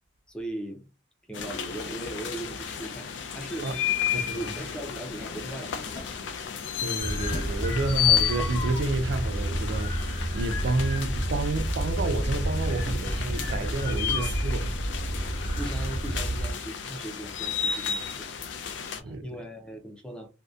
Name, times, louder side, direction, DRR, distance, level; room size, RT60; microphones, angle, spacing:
voice 1, 0.3-0.9 1.3-3.7 4.3-6.0 12.9-13.6 13.9-14.4 15.5-18.3 19.0-20.3, right 1 dB, 5° left, 0.4 m, -39 dB
sound 1, 1.3-19.0, left 8 dB, 80° left, 0.4 m, -32 dB
sound 2, 4.4-9.5, left 2 dB, 50° left, 0.9 m, -47 dB
voice 2, 6.8-14.7 19.0-19.2, right 2 dB, 75° right, 0.4 m, -30 dB
sound 3, 7.0-16.5, right 1 dB, 20° left, 0.9 m, -30 dB
2.6 x 2.1 x 2.3 m
head